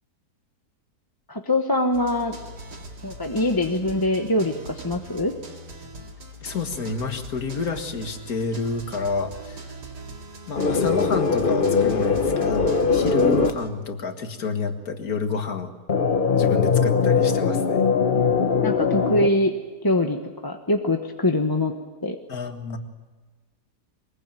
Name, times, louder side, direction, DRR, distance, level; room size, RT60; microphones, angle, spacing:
voice 1, 1.3-2.4 3.0-5.3 18.6-19.5 19.8-20.2 20.4-21.7 22.0-22.2, left 1 dB, 15° left, 4 dB, 1.0 m, -23 dB
sound 1, 1.9-13.7, right 2 dB, 85° right, 2.9 m, -41 dB
voice 2, 6.4-9.6 10.5-15.7 16.4-17.8 22.3-22.8, left 4 dB, 65° left, 6 dB, 2.2 m, -29 dB
sound 2, 10.6-13.5 15.9-19.3, left 5 dB, 35° left, 1.2 m, -21 dB
23.0 x 21.0 x 9.1 m, 1.3 s
omnidirectional pair, 1.7 m